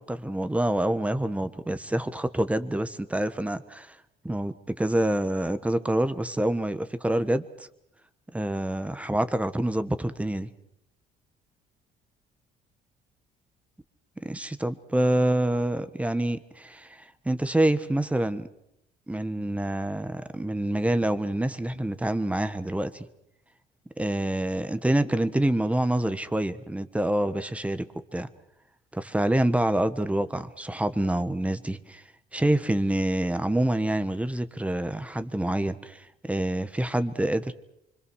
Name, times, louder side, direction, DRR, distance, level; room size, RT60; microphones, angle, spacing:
voice 1, 0.0-4.0 4.2-7.7 8.3-10.5 14.2-18.5 19.1-23.1 24.0-27.8 28.1-28.3 28.9-32.0 32.3-37.5, right 1 dB, 10° right, 11 dB, 1.4 m, -27 dB
25.5 x 25.0 x 6.4 m, 0.79 s
cardioid pair, 110°, 17 cm